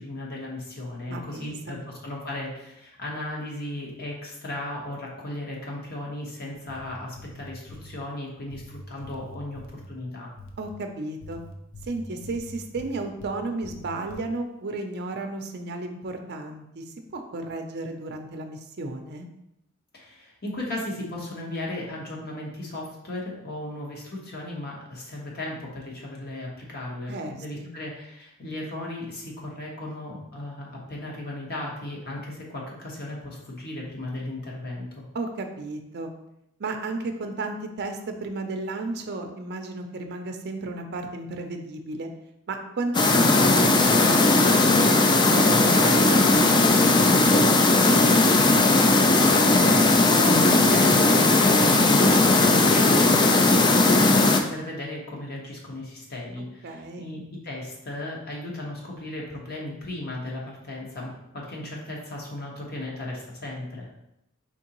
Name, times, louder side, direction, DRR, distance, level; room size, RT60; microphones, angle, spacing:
voice 1, 0.0-10.3 19.9-35.0 48.4-54.2 54.5-63.9, left 1 dB, 50° left, -2 dB, 1.1 m, -36 dB
voice 2, 1.1-1.8 10.6-11.4 11.8-16.8 17.1-19.3 27.1-27.7 35.1-36.1 36.6-42.1 42.5-47.6 56.6-57.1, right 2 dB, 50° right, 5 dB, 0.5 m, -33 dB
sound 1, 6.5-8.0 8.5-9.9 10.4-10.7 11.2-13.3 13.6-14.2, left 1 dB, 65° left, 0.6 m, -44 dB
sound 2, 42.9-54.4, left 2 dB, 20° left, 0.3 m, -18 dB
4.4 x 3.6 x 2.9 m, 0.82 s
head